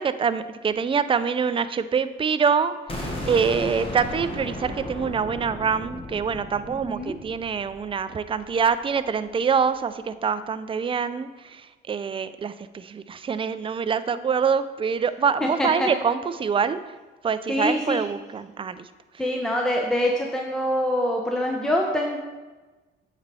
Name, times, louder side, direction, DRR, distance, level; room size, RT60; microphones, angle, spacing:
voice 1, 0.0-16.9 17.2-18.9, right 6 dB, 25° right, 13 dB, 0.4 m, -25 dB
sound 1, 2.9-8.7, left 1 dB, 30° left, 1.3 m, -35 dB
voice 2, 6.7-7.2 15.4-15.9 17.5-18.0 19.2-22.2, left 1 dB, 5° left, 0 dB, 0.7 m, -25 dB
8.6 x 4.1 x 4.1 m, 1.2 s
cardioid pair, 90°, 20 cm